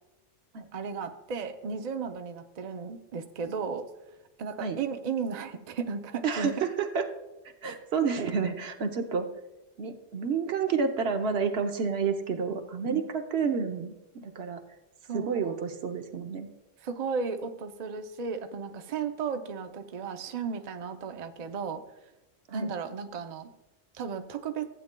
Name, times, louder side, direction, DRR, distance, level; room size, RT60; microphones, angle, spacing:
voice 1, 0.7-3.9 4.4-6.5 7.6-7.7 12.8-13.0 15.1-15.5 16.8-21.8 22.5-23.5 23.9-24.7, right 5 dB, 45° right, 7 dB, 0.6 m, -34 dB
voice 2, 6.2-7.1 7.6-9.3 9.8-14.6 15.1-16.5 22.5-22.7, right 5 dB, 75° right, 6 dB, 1.0 m, -30 dB
15.0 x 8.5 x 2.2 m, 0.98 s
omnidirectional pair, 1.1 m